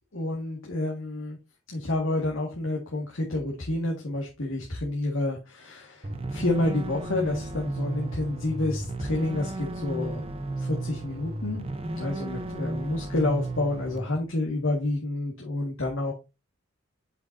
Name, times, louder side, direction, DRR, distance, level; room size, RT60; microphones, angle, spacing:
voice 1, 0.1-1.4 1.7-10.2 10.6-11.6 11.9-16.1, left 2 dB, 75° left, -2 dB, 1.9 m, -29 dB
sound 1, 6.0-14.0, right 2 dB, 30° right, 0.8 m, -34 dB
7.5 x 5.6 x 2.7 m, 0.26 s
head